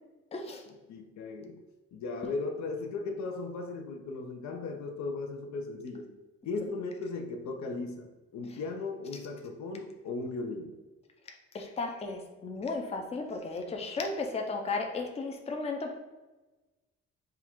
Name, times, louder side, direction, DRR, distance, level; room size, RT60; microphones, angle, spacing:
voice 1, 0.3-0.7 11.3-15.9, left 3 dB, 20° left, 3 dB, 0.5 m, -35 dB
voice 2, 0.9-1.6 1.9-6.1 6.4-10.8, left 3 dB, 65° left, 3 dB, 0.7 m, -37 dB
3.7 x 2.4 x 4.4 m, 1.2 s
cardioid pair, 90°, 30 cm